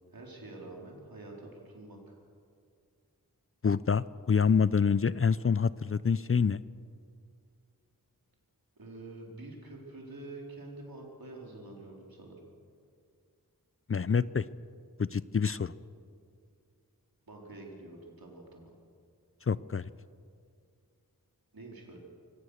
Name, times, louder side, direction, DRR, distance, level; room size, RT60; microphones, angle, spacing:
voice 1, 0.1-2.2 8.8-12.5 17.3-18.7 21.5-22.0, right 2 dB, 75° right, -1 dB, 4.3 m, -47 dB
voice 2, 3.6-6.6 13.9-14.4 15.0-15.7 19.5-19.9, left 6 dB, 40° left, 17 dB, 0.5 m, -27 dB
24.0 x 17.0 x 6.6 m, 2.3 s
wide cardioid pair, 50°, 35 cm